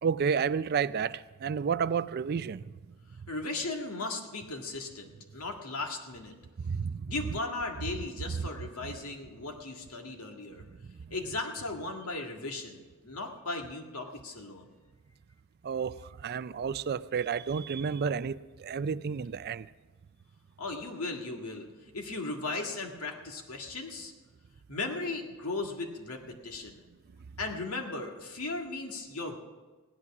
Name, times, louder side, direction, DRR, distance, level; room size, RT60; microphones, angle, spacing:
voice 1, 0.0-2.6 6.6-7.1 15.6-19.7, right 6 dB, 45° right, 16 dB, 0.3 m, -31 dB
voice 2, 3.3-6.4 7.1-10.6 11.1-12.8 13.0-14.7 20.6-21.7 21.9-24.1 24.7-26.8 27.4-29.4, left 3 dB, 85° left, 2 dB, 1.8 m, -37 dB
16.0 x 11.0 x 6.0 m, 1.3 s
head